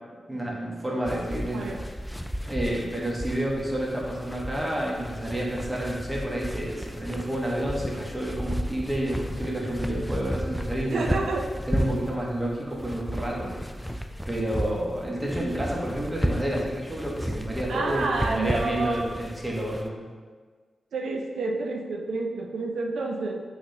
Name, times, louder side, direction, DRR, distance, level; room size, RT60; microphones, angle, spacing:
voice 1, 0.3-2.0 2.5-11.2 11.7-13.9 14.3-20.0, right 1 dB, 10° right, -4 dB, 1.1 m, -30 dB
sound 1, 1.0-19.9, equal, 5° left, 0.3 m, -34 dB
voice 2, 10.9-11.5 17.7-19.1 20.9-23.4, right 3 dB, 90° right, 1 dB, 0.4 m, -29 dB
5.8 x 3.2 x 2.8 m, 1.5 s
cardioid pair, 75°, 0 cm